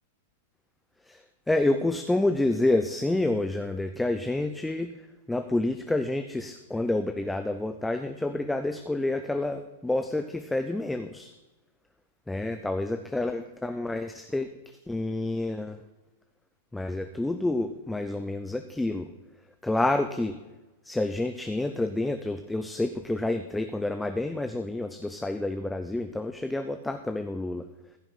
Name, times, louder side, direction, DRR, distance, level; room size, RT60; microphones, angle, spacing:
voice 1, 1.5-4.9 5.3-11.3 12.3-14.5 14.9-15.8 16.7-19.1 19.6-20.4 20.8-27.7, left 2 dB, 5° left, 7 dB, 0.7 m, -28 dB
15.5 x 5.8 x 5.6 m, 1.1 s
hypercardioid pair, 110°, 0 cm